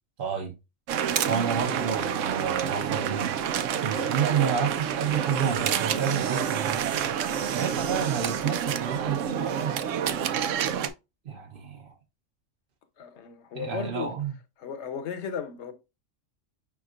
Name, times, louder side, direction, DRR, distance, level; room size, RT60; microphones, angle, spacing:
voice 1, 0.2-0.5 1.3-3.3 3.8-6.8 7.5-9.7 11.2-11.9 13.5-14.3, right 7 dB, 50° right, 0.9 m, -30 dB
sound 1, 0.9-10.9, right 8 dB, 80° right, 0.9 m, -28 dB
voice 2, 13.0-14.1 14.6-15.7, left 7 dB, 65° left, 1.1 m, -35 dB
5.9 x 3.6 x 2.4 m
omnidirectional pair, 1.3 m